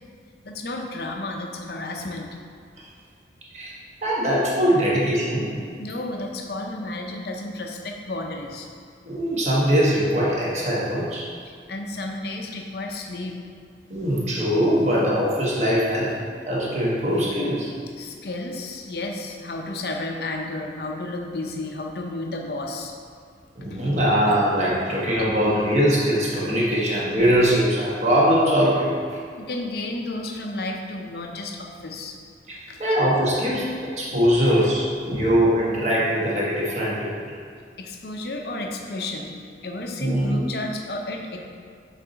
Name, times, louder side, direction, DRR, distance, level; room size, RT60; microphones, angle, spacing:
voice 1, 0.4-2.3 5.8-8.7 11.4-13.4 18.0-23.0 23.7-23.8 29.4-32.2 32.7-32.8 37.8-39.3 39.6-41.4, left 2 dB, 55° left, 2 dB, 0.6 m, -32 dB
voice 2, 4.0-5.6 9.0-11.2 13.9-16.1 16.5-17.7 23.6-28.9 32.5-37.1 40.0-40.4, equal, 40° right, -6 dB, 1.2 m, -21 dB
6.9 x 4.1 x 4.0 m, 2.2 s
head